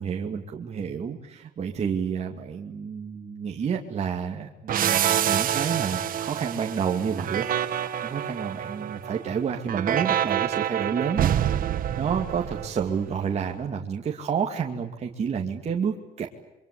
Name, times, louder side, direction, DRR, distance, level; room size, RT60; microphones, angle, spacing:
voice 1, 0.0-11.7 12.0-16.3, right 7 dB, 40° right, 1 dB, 2.5 m, -30 dB
sound 1, 4.7-13.1, right 10 dB, 55° right, 1.6 m, -27 dB
27.5 x 24.5 x 8.5 m, 0.92 s
cardioid pair, 110°, 17 cm